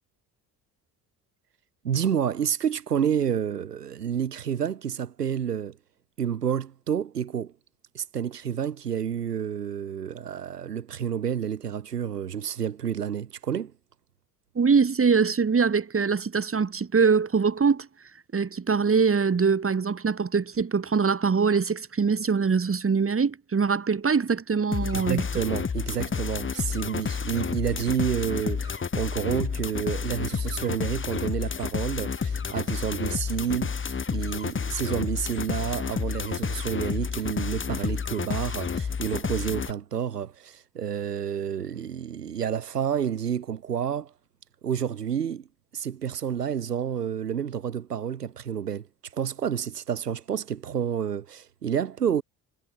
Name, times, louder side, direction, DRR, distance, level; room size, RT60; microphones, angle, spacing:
voice 1, 1.8-5.8 6.2-7.5 7.9-13.7 24.9-44.1 44.6-45.5 45.7-48.9 49.1-52.2, right 8 dB, 85° right, 2.8 m, -29 dB
voice 2, 14.5-17.9 18.3-25.2, right 5 dB, 30° right, 4.5 m, -23 dB
sound 1, 24.7-39.7, left 6 dB, 25° left, 1.9 m, -30 dB
figure-of-eight pair, 50°, 46 cm